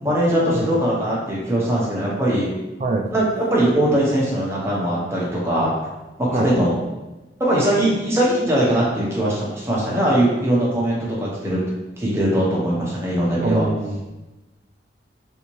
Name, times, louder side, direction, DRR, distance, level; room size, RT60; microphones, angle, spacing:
voice 1, 0.0-2.5 3.1-5.7 6.2-6.8 7.4-11.6 12.0-13.6, right 1 dB, 15° right, -5 dB, 0.8 m, -20 dB
voice 2, 2.8-3.1 6.3-6.5 13.4-14.0, right 2 dB, 40° right, 2 dB, 0.4 m, -23 dB
3.5 x 2.8 x 3.0 m, 1.1 s
head